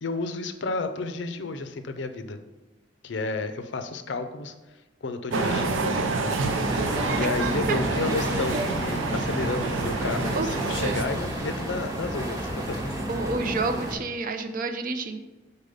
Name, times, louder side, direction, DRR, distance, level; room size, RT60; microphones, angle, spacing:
voice 1, 0.0-2.4 3.0-4.5 5.0-5.9 6.2-6.4 7.1-12.8, left 3 dB, 65° left, 9 dB, 0.5 m, -31 dB
sound 1, 5.3-11.1, right 3 dB, 85° right, 0.6 m, -28 dB
sound 2, 6.4-13.9, right 1 dB, 20° right, 1.1 m, -31 dB
voice 2, 10.1-10.6 11.0-11.1 13.1-15.2, right 3 dB, 45° right, 7 dB, 0.5 m, -29 dB
5.1 x 4.1 x 5.4 m, 1.1 s
head